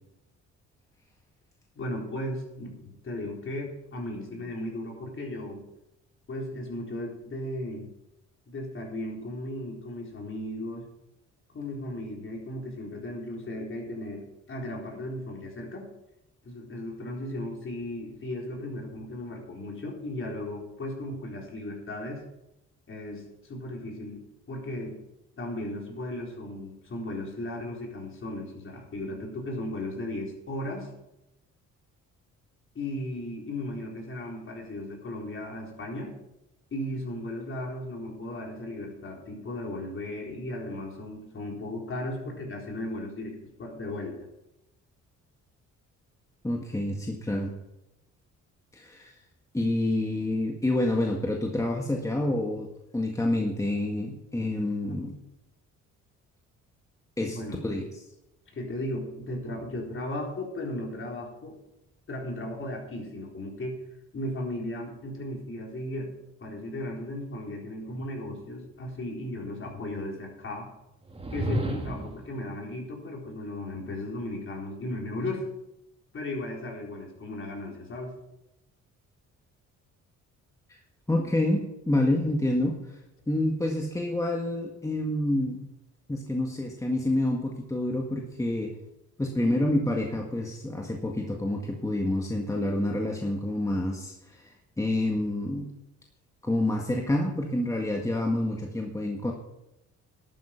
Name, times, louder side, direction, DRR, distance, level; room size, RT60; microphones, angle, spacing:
voice 1, 1.8-5.6 6.3-7.9 8.5-10.9 11.5-15.9 16.4-22.2 22.9-25.0 25.4-30.9 32.7-36.1 36.7-44.2 57.2-57.8 58.5-61.5 62.1-63.8 64.1-66.1 66.4-70.7 71.3-75.5 76.1-78.1, left 1 dB, 45° left, 0 dB, 4.0 m, -36 dB
voice 2, 46.4-47.5 48.7-49.1 49.5-52.7 52.9-55.1 57.2-57.4 57.6-57.8 81.1-82.7 83.3-85.6 86.1-88.7 89.2-94.4 94.8-95.7 96.4-99.3, left 1 dB, 10° left, 0 dB, 1.7 m, -28 dB
sound 1, 71.1-72.3, right 1 dB, 20° right, 1.8 m, -31 dB
12.0 x 9.5 x 5.9 m, 0.90 s
cardioid pair, 90°, 30 cm